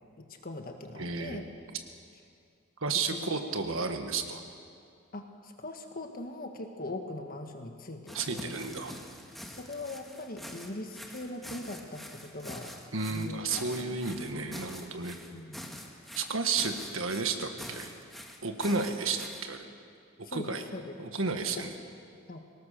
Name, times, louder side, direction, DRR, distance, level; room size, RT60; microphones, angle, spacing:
voice 1, 0.2-1.4 3.1-3.3 5.1-8.5 9.5-12.7 13.1-14.0 15.3-15.7 20.2-20.9 21.4-21.6 22.3-22.4, left 2 dB, 45° left, 4 dB, 1.5 m, -41 dB
voice 2, 1.0-1.4 2.8-4.4 8.1-8.9 12.9-15.2 16.1-17.9 18.4-19.6 20.2-20.6 21.0-21.7, right 4 dB, 75° right, 6 dB, 1.7 m, -32 dB
sound 1, 8.1-19.4, equal, ahead, 1.8 m, -45 dB
24.0 x 18.5 x 6.8 m, 2.3 s
head